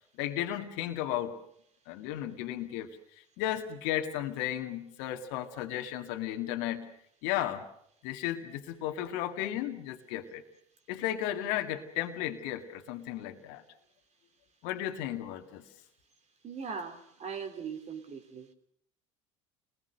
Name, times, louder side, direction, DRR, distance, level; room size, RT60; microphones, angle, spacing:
voice 1, 0.2-1.4 1.9-6.9 7.2-7.7 8.0-10.4 10.9-13.6 14.6-15.6, left 12 dB, 65° left, 4 dB, 2.0 m, -34 dB
voice 2, 16.4-18.5, right 6 dB, 45° right, 7 dB, 3.6 m, -40 dB
28.5 x 20.5 x 6.6 m, 0.70 s
hypercardioid pair, 70°, 17 cm